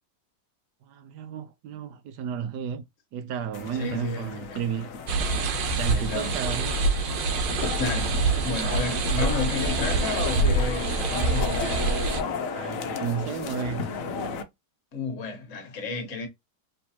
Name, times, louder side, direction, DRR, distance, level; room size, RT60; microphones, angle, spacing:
voice 1, 0.9-2.8 3.1-4.9 5.2-7.0 12.5-13.9, right 8 dB, 70° right, 1.1 m, -33 dB
sound 1, 3.5-14.4, left 5 dB, 65° left, 0.9 m, -34 dB
voice 2, 3.7-4.6 5.9-6.6 7.8-11.8 14.9-16.3, left 4 dB, 50° left, 1.4 m, -32 dB
sound 2, 5.1-12.2, right 3 dB, 90° right, 1.5 m, -26 dB
4.5 x 3.3 x 2.8 m
omnidirectional pair, 1.9 m